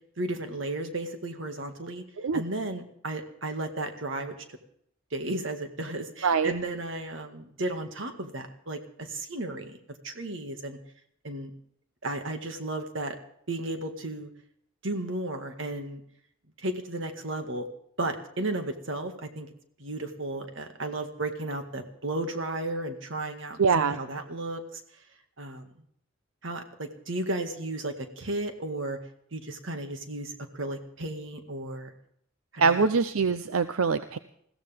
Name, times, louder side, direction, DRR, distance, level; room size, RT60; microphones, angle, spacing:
voice 1, 0.2-2.0 2.3-4.4 5.1-9.8 10.0-10.8 11.2-11.5 12.0-13.2 13.5-14.3 14.8-16.0 16.6-17.7 18.0-19.5 19.8-24.8 25.4-25.7 26.4-29.0 29.3-31.9 32.5-32.9, right 2 dB, 65° right, 6 dB, 1.9 m, -34 dB
voice 2, 6.2-6.5 23.6-24.0 32.6-34.2, right 5 dB, 85° right, 11 dB, 0.6 m, -24 dB
21.0 x 15.5 x 3.6 m, 0.69 s
head